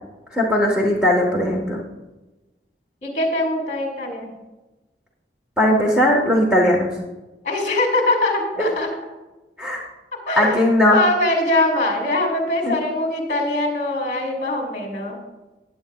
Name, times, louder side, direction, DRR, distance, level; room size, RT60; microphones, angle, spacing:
voice 1, 0.3-1.8 5.6-6.9 8.6-8.7 9.6-9.8 10.3-11.0 12.6-12.8, left 1 dB, 5° right, -2 dB, 1.3 m, -18 dB
voice 2, 3.0-4.3 7.4-8.9 10.1-10.6 10.9-15.2, left 1 dB, 40° left, 1 dB, 2.5 m, -22 dB
16.0 x 8.6 x 2.3 m, 1.1 s
head